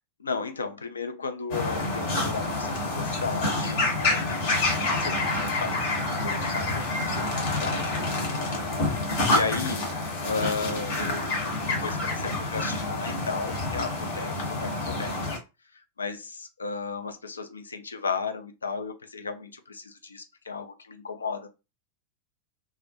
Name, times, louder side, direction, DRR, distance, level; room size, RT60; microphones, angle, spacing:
voice 1, 0.2-7.9 9.3-9.9 10.2-15.2 15.7-21.5, left 4 dB, 75° left, 0.3 m, -34 dB
sound 1, 1.5-15.4, left 2 dB, 50° left, 0.8 m, -28 dB
2.4 x 2.0 x 2.6 m
figure-of-eight pair, 90°, 0 cm